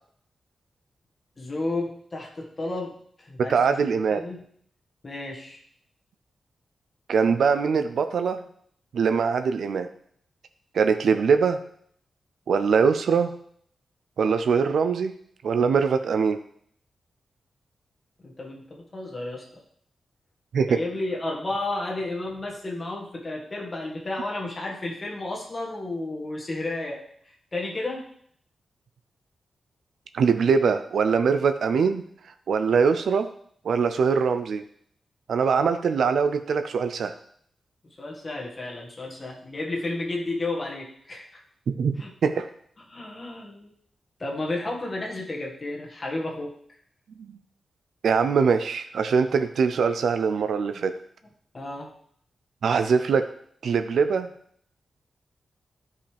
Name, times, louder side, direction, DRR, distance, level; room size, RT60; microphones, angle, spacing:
voice 1, 1.4-4.4 5.0-5.6 18.2-19.6 20.7-28.1 38.0-41.4 42.0-42.1 42.9-43.7 44.2-46.5 51.5-51.9, left 2 dB, 30° left, -2 dB, 1.8 m, -32 dB
voice 2, 3.5-4.2 7.1-8.4 8.9-9.9 10.7-11.6 12.5-13.3 14.2-15.1 15.4-16.4 20.5-20.8 30.1-32.0 32.5-33.3 33.6-34.6 35.3-37.1 41.7-41.9 42.2-42.5 47.3-47.4 48.0-50.9 52.6-53.2 53.6-54.3, right 5 dB, 80° right, 9 dB, 0.4 m, -22 dB
12.5 x 5.4 x 3.4 m, 0.64 s
wide cardioid pair, 145°, 0 cm